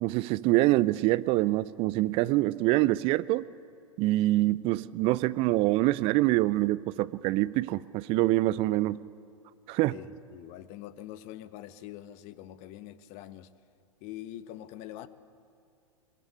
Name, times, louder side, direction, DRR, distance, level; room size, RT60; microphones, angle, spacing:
voice 1, 0.0-3.5 4.0-9.0 9.7-9.9, right 18 dB, 30° right, 0.6 m, -25 dB
voice 2, 9.9-13.5 14.0-15.1, left 13 dB, 40° left, 1.1 m, -44 dB
22.0 x 21.5 x 8.4 m
figure-of-eight pair, 100°, 18 cm